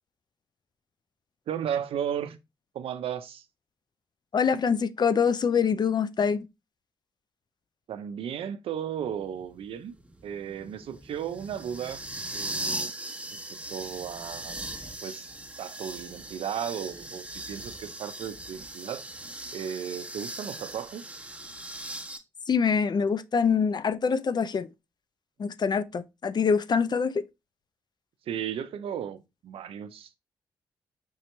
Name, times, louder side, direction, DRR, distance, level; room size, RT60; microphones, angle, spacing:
voice 1, 1.5-2.4 2.7-3.5 7.9-9.9 10.2-12.0 12.3-12.9 13.3-14.6 15.0-15.3 15.6-19.0 19.5-21.1 28.3-30.2, right 9 dB, 75° right, 0.5 m, -35 dB
voice 2, 4.3-6.5 22.5-24.7 25.4-27.1, left 6 dB, 45° left, 0.4 m, -25 dB
sound 1, 9.0-22.2, right 1 dB, 15° right, 1.0 m, -39 dB
5.4 x 2.8 x 3.1 m
supercardioid pair, 40°, 10 cm